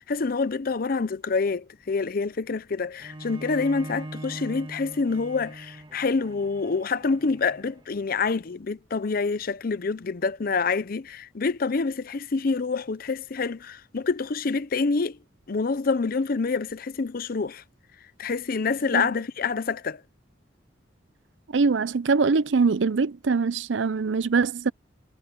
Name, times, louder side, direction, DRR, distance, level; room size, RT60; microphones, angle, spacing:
voice 1, 0.0-15.2 15.5-17.6 18.2-20.0, left 4 dB, 50° left, 0.6 m, -27 dB
Bowed string instrument, 3.0-8.2, right 1 dB, 25° right, 1.5 m, -41 dB
voice 2, 21.5-24.7, right 4 dB, 85° right, 0.6 m, -23 dB
head